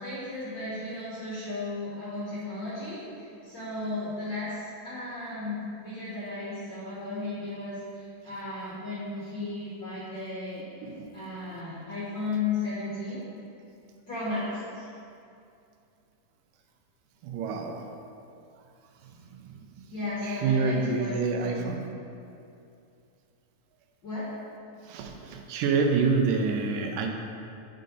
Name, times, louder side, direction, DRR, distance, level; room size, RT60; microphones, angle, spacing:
voice 1, 0.0-10.6 11.1-13.2 14.1-14.9 19.9-21.1 21.4-21.7 24.0-24.3, left 3 dB, 55° left, -9 dB, 1.3 m, -34 dB
voice 2, 17.2-17.8 19.4-19.6 20.2-21.9 24.8-27.1, right 4 dB, 85° right, 3 dB, 2.2 m, -27 dB
6.6 x 3.8 x 5.2 m, 2.6 s
omnidirectional pair, 3.7 m